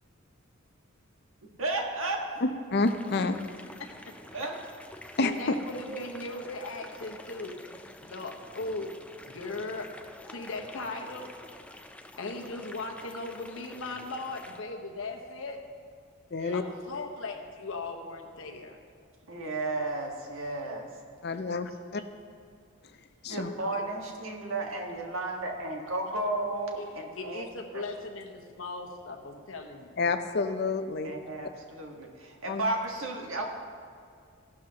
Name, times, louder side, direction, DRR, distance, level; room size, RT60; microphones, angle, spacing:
voice 1, 1.4-2.2 4.3-4.6 5.9-6.1 16.4-16.6 19.3-20.9 23.3-27.5 27.7-27.8 31.0-33.4, right 2 dB, 75° right, 1.5 m, -33 dB
voice 2, 2.4-3.4 5.2-5.6 16.3-16.6 21.2-22.0 22.8-23.0 23.2-23.5 30.0-31.1 32.5-32.6, left 3 dB, 50° left, 0.6 m, -29 dB
sound 1, 2.8-14.6, left 1 dB, 5° left, 0.4 m, -48 dB
voice 3, 3.8-4.2 5.2-7.6 8.0-8.9 9.3-9.9 10.3-11.3 12.2-15.6 16.5-18.8 23.7-23.8 26.8-26.9 27.2-29.9, left 3 dB, 70° left, 1.2 m, -38 dB
15.5 x 12.0 x 2.9 m
head